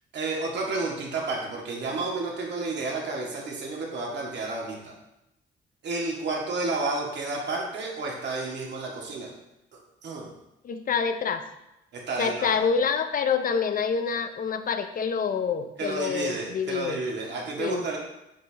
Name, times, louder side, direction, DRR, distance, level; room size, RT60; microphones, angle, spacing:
voice 1, 0.1-4.9 5.8-9.3 10.0-10.3 11.9-12.6 15.8-18.0, right 3 dB, 60° right, -2 dB, 1.9 m, -31 dB
voice 2, 10.6-11.4 12.2-17.0 17.6-17.8, left 6 dB, 45° left, 9 dB, 0.6 m, -27 dB
7.4 x 5.3 x 2.9 m, 0.90 s
cardioid pair, 90°, 20 cm